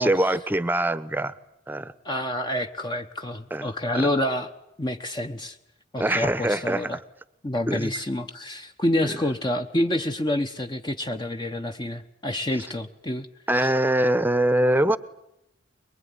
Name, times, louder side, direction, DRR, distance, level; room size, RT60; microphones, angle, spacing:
voice 1, 0.0-1.3 1.7-1.9 3.5-3.7 3.9-4.1 6.0-7.0 7.7-7.9 13.5-15.0, right 1 dB, 10° right, 16 dB, 0.9 m, -23 dB
voice 2, 2.0-4.5 4.8-5.6 5.9-7.0 7.4-13.3 13.6-13.7, left 1 dB, 25° left, 5 dB, 1.0 m, -28 dB
23.5 x 22.5 x 9.7 m, 0.83 s
head